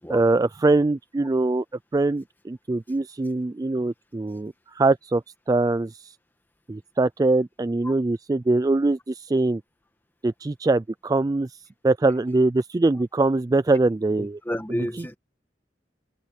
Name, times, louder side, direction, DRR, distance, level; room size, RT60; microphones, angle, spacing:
voice 1, 0.1-1.6 1.9-6.1 6.7-9.6 10.2-11.6 11.8-14.4, right 2 dB, 20° right, 0.3 m, -23 dB
voice 2, 14.2-15.2, equal, 10° left, 1.6 m, -31 dB
head